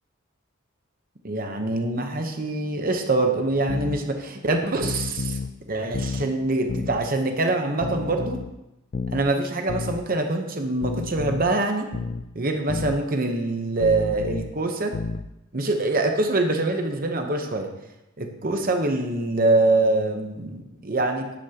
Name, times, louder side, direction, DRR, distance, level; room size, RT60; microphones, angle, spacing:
voice 1, 1.2-5.4 5.7-8.4 9.1-11.9 12.3-14.9 15.5-17.7 18.2-21.4, right 2 dB, 40° right, 4 dB, 0.9 m, -24 dB
sound 1, 3.7-4.0 4.8-5.5 5.9-6.3 6.7-7.0 7.8-8.5 8.9-9.3 9.7-10.0 10.8-11.5 11.9-12.3 12.7-13.0 13.8-14.5 14.9-15.3, left 4 dB, 40° left, 0.3 m, -30 dB
12.0 x 9.7 x 2.9 m, 0.94 s
head